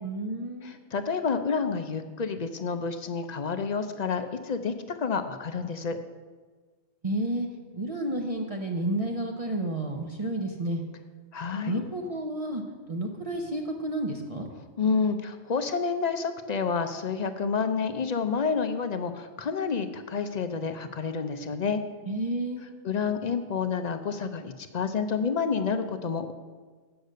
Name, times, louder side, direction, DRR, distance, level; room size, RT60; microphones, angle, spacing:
voice 1, 0.0-0.7 7.0-7.5 7.7-10.8 11.7-12.6 12.9-14.5 22.1-22.8, right 1 dB, 30° right, 1 dB, 0.8 m, -31 dB
voice 2, 0.6-6.0 11.3-11.8 14.8-21.8 22.8-26.3, left 5 dB, 50° left, 9 dB, 0.5 m, -29 dB
8.0 x 6.6 x 6.6 m, 1.4 s
omnidirectional pair, 1.3 m